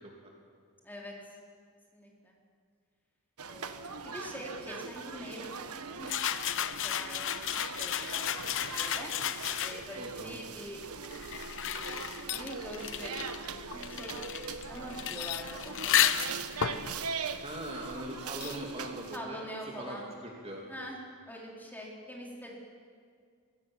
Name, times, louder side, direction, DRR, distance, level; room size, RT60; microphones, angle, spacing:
voice 1, 0.8-1.1 1.9-2.3 3.5-7.4 7.8-8.3 8.6-9.1 9.6-10.8 11.6-13.1 13.4-16.5 19.1-20.1 20.7-21.0 21.3-22.6, equal, 10° left, -2 dB, 3.9 m, -45 dB
sound 1, 3.4-19.2, right 5 dB, 80° right, 1.3 m, -41 dB
sound 2, 6.0-10.0 10.8-18.2, left 10 dB, 60° left, 0.8 m, -33 dB
voice 2, 10.0-10.4 17.4-19.4 19.8-20.6, right 1 dB, 25° right, -1 dB, 2.7 m, -41 dB
sound 3, 12.3-12.5 15.0-15.5 18.3-18.7, left 17 dB, 85° left, 0.5 m, -40 dB
24.5 x 17.0 x 7.5 m, 2.1 s
head